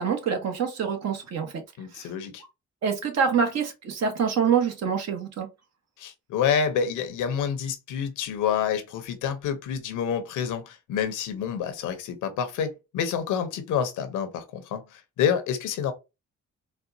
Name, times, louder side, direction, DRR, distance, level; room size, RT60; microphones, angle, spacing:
voice 1, 0.0-1.6 1.9-2.1 2.8-5.5, right 6 dB, 60° right, 1.2 m, -26 dB
voice 2, 1.8-2.4 6.0-15.9, left 8 dB, 90° left, 0.8 m, -28 dB
4.1 x 2.2 x 2.7 m
cardioid pair, 90°, 30 cm